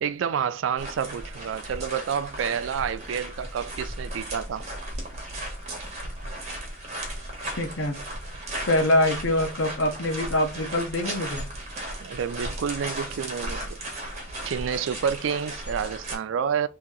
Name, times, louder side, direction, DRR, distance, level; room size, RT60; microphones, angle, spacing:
voice 1, 0.0-4.6 12.0-13.8 14.4-16.7, right 7 dB, 75° right, 0.3 m, -29 dB
sound 1, 0.8-16.2, right 1 dB, 35° right, 1.1 m, -36 dB
voice 2, 7.6-8.0 8.7-11.4, left 1 dB, 80° left, 0.9 m, -24 dB
2.9 x 2.8 x 3.6 m
head